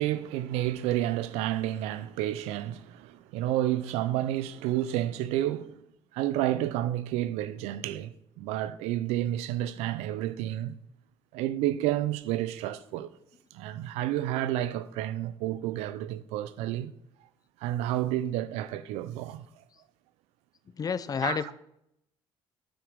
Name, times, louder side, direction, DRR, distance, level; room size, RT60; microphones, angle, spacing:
voice 1, 0.0-5.7 6.1-10.8 11.3-13.1 13.5-16.9 17.6-19.5 21.2-21.5, right 13 dB, 80° right, 0.5 m, -30 dB
voice 2, 20.8-21.5, left 6 dB, 35° left, 0.5 m, -29 dB
8.9 x 4.8 x 5.2 m
supercardioid pair, 75°, 11 cm